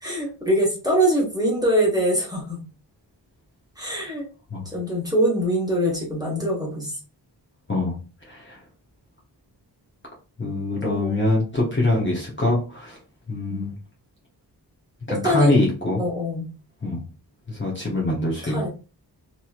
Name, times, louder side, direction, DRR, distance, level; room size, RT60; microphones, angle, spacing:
voice 1, 0.0-2.6 3.8-4.3 4.6-6.9 10.8-11.2 13.5-13.7 15.1-15.6 16.0-16.5 18.4-18.7, equal, 10° right, -3 dB, 1.4 m, -23 dB
voice 2, 8.3-8.6 10.4-13.0 13.3-13.8 15.1-16.0 16.8-17.0 17.5-18.7, left 2 dB, 25° left, -4 dB, 1.0 m, -24 dB
3.0 x 2.9 x 2.4 m, 0.34 s
wide cardioid pair, 95°, 43 cm